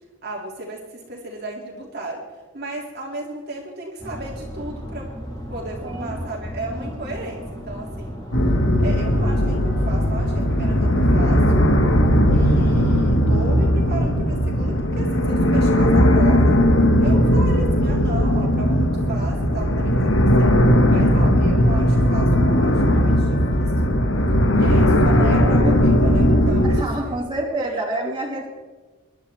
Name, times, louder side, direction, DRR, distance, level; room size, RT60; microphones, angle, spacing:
voice 1, 0.2-2.2 2.5-5.1 5.5-8.2 8.8-11.7 12.3-16.6 17.0-20.6 20.9-24.0 24.5-27.2 27.6-27.8, right 1 dB, 50° right, -2 dB, 2.3 m, -34 dB
sound 1, 4.0-13.7, equal, 20° left, 3.9 m, -33 dB
voice 2, 5.8-6.2 26.6-28.5, right 2 dB, 25° right, -3 dB, 3.1 m, -27 dB
sound 2, 8.3-26.8, equal, 70° left, 1.5 m, -17 dB
24.0 x 11.0 x 3.4 m, 1.3 s
head